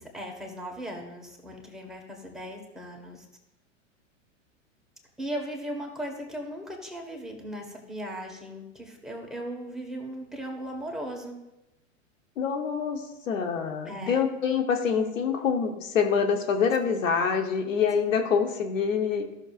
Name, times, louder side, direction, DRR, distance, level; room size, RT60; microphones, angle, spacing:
voice 1, 0.0-3.3 5.2-11.4 13.8-14.2, equal, ahead, 0 dB, 1.4 m, -37 dB
voice 2, 12.4-19.2, left 6 dB, 80° left, 4 dB, 1.2 m, -26 dB
14.0 x 6.4 x 2.5 m, 0.93 s
hypercardioid pair, 110°, 38 cm